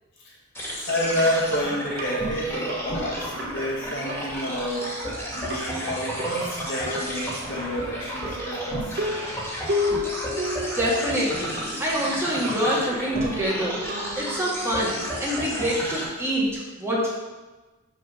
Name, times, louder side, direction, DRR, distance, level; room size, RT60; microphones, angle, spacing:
sound 1, 0.5-16.0, equal, 10° left, 2.2 m, -32 dB
voice 1, 0.9-5.0 5.3-9.0, equal, 60° left, -4 dB, 1.9 m, -29 dB
sound 2, 1.2-16.5, left 2 dB, 50° right, 1.1 m, -35 dB
voice 2, 10.7-17.1, equal, 15° right, -5 dB, 1.8 m, -26 dB
6.1 x 4.9 x 6.1 m, 1.2 s
head